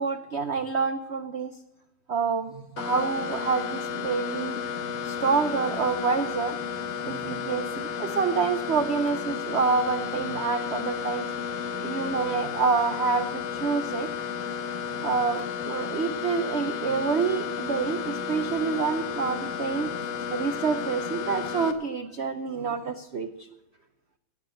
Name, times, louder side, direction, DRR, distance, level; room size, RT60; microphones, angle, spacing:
voice 1, 0.0-1.5 2.1-6.6 7.0-11.3 11.8-14.1 15.0-23.5, right 5 dB, 90° right, 9 dB, 0.5 m, -27 dB
sound 1, 2.8-21.7, left 7 dB, 90° left, 1.9 m, -33 dB
17.5 x 6.9 x 7.6 m, 0.92 s
omnidirectional pair, 2.1 m